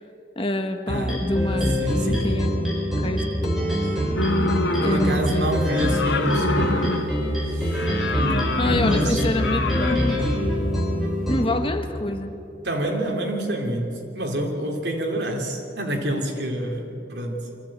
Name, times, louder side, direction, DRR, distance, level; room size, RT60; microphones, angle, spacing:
voice 1, 0.4-2.5 3.0-3.2 4.8-5.9 8.6-10.3 11.3-12.3, left 1 dB, 30° left, 7 dB, 1.2 m, -27 dB
sound 1, 0.9-11.5, equal, ahead, 5.5 m, -24 dB
voice 2, 0.9-1.2 1.8-2.4 4.7-6.9 7.5-9.2 12.6-17.5, right 1 dB, 75° right, 1 dB, 3.2 m, -28 dB
sound 2, 4.2-5.4 5.6-7.3 7.7-10.1, left 2 dB, 90° left, 1.5 m, -26 dB
25.0 x 15.0 x 8.9 m, 2.8 s
head